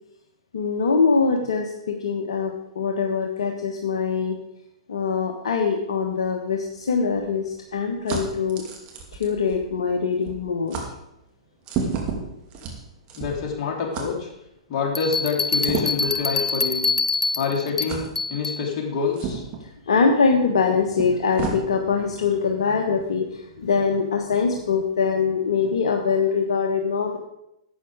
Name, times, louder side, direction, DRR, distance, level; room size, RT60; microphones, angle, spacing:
voice 1, 0.5-4.4 4.9-8.6 9.2-10.8 16.0-16.5 19.6-27.2, left 5 dB, 65° left, 2 dB, 1.2 m, -23 dB
sound 1, 6.5-10.0 10.2-10.4 10.7-10.9 11.6-13.5 13.9-14.1 15.6-16.1 16.8-16.9 17.9-18.1 19.1-19.6 20.6-20.7 21.0-21.6, right 5 dB, 35° right, 2.7 m, -31 dB
voice 2, 13.1-14.3 14.7-16.9 17.3-19.4, left 5 dB, 40° left, -1 dB, 3.4 m, -27 dB
sound 2, 14.9-18.6, left 4 dB, 15° left, 0.5 m, -25 dB
12.0 x 8.3 x 5.0 m, 0.83 s
figure-of-eight pair, 110°, 3 cm